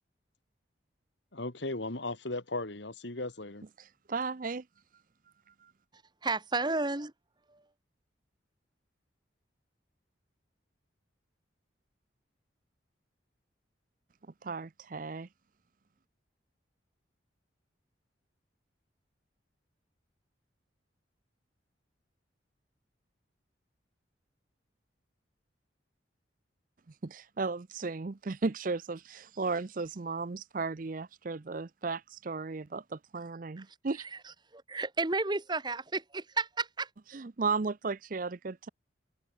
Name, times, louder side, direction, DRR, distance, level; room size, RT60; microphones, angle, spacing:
voice 1, 1.3-3.6, left 2 dB, 70° left, 2.3 m, -36 dB
voice 2, 4.1-4.6 14.4-15.3 27.0-34.0 37.1-38.7, right 4 dB, 45° right, 0.6 m, -35 dB
voice 3, 6.2-7.1 33.6-33.7 34.5-36.9, right 3 dB, 25° right, 1.2 m, -32 dB
head